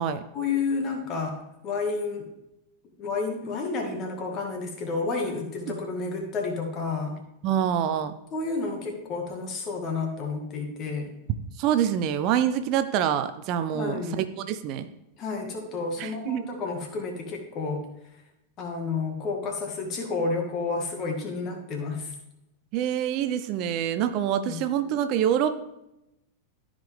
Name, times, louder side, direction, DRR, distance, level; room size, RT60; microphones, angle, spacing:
voice 1, 0.3-1.4 1.6-2.2 3.0-7.2 8.3-11.1 13.7-14.2 15.2-17.9 18.6-22.1 24.5-24.6, left 4 dB, 35° left, 3 dB, 1.9 m, -30 dB
voice 2, 7.4-8.1 11.6-14.9 16.0-16.5 22.7-25.7, right 9 dB, 40° right, 10 dB, 0.5 m, -26 dB
13.5 x 5.0 x 3.5 m, 0.87 s
figure-of-eight pair, 90°, 0 cm